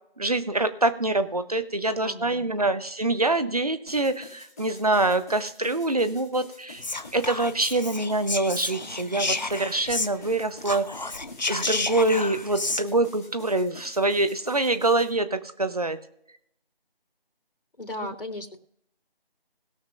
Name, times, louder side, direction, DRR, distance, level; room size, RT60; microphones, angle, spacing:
voice 1, 0.2-6.8 7.1-11.1 11.5-16.0 18.0-18.1, right 2 dB, 40° right, 11 dB, 0.9 m, -25 dB
voice 2, 2.0-2.7 17.8-18.6, left 1 dB, 65° left, 3 dB, 2.9 m, -37 dB
sound 1, 3.9-15.1, left 2 dB, 15° left, 1.7 m, -48 dB
Whispering, 6.8-10.3 10.6-12.8, left 3 dB, 45° left, 0.6 m, -31 dB
21.0 x 7.2 x 2.5 m, 0.77 s
figure-of-eight pair, 170°, 30 cm